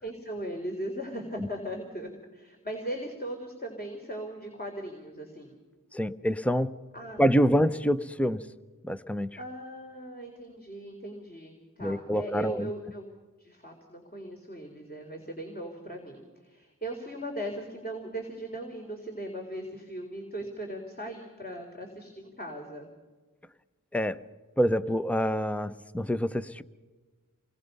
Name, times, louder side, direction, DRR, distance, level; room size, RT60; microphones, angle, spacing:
voice 1, 0.0-5.6 6.9-7.3 9.4-13.0 13.4-22.9, right 1 dB, 30° left, 1 dB, 3.8 m, -38 dB
voice 2, 5.9-6.8 7.2-8.4 8.8-9.4 11.8-12.7 23.9-24.2 24.6-26.6, equal, 5° left, 13 dB, 0.8 m, -26 dB
28.5 x 21.5 x 5.5 m, 1.3 s
wide cardioid pair, 50°, 33 cm